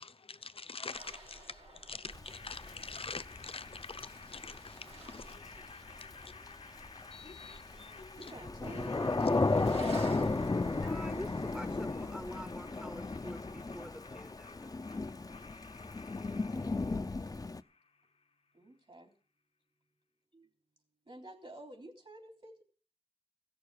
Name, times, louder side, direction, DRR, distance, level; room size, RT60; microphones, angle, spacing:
voice 1, 0.0-6.6 7.1-8.2, left 4 dB, 65° left, 0.8 m, -46 dB
sound 1, 0.9-12.7, right 1 dB, 80° right, 3.8 m, -53 dB
Thunder / Rain, 2.1-17.6, left 3 dB, 35° left, 0.6 m, -35 dB
sound 2, 2.3-18.2, left 4 dB, 85° left, 1.1 m, -54 dB
voice 2, 8.2-9.3 18.5-19.1 20.3-20.5 21.1-22.6, right 2 dB, 60° right, 3.6 m, -49 dB
voice 3, 10.7-14.8, equal, 5° right, 0.8 m, -47 dB
15.5 x 6.8 x 8.4 m
wide cardioid pair, 65°, 10 cm